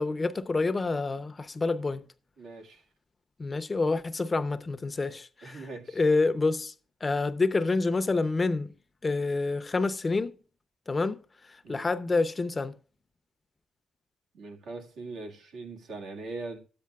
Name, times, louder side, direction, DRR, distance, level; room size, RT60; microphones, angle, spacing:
voice 1, 0.0-2.0 3.4-5.7 5.9-6.7 7.0-8.7 9.0-10.3 10.9-11.2 11.7-12.7, left 3 dB, 30° left, 0.7 m, -27 dB
voice 2, 2.4-2.8 5.4-6.0 11.6-11.9 14.3-16.6, right 3 dB, 80° right, 1.9 m, -41 dB
13.0 x 8.6 x 2.4 m
cardioid pair, 80°, 0 cm